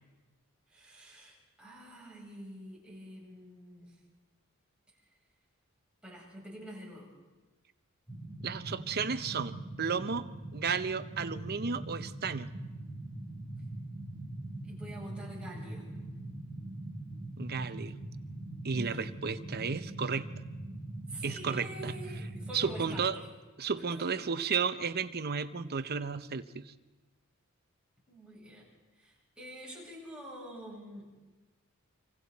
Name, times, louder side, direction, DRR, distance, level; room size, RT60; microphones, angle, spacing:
voice 1, 0.7-4.0 6.0-7.1 14.6-15.9 18.7-19.0 21.1-23.3 23.7-24.2 28.1-28.7 29.0-31.2, right 1 dB, 5° right, -6 dB, 7.9 m, -46 dB
sound 1, 8.1-23.1, right 1 dB, 25° left, 4.2 m, -42 dB
voice 2, 8.4-12.5 17.4-17.9 18.6-20.3 21.2-22.0 22.5-23.2 23.6-26.7, right 5 dB, 45° right, 11 dB, 0.8 m, -33 dB
26.0 x 25.5 x 4.1 m, 1.2 s
head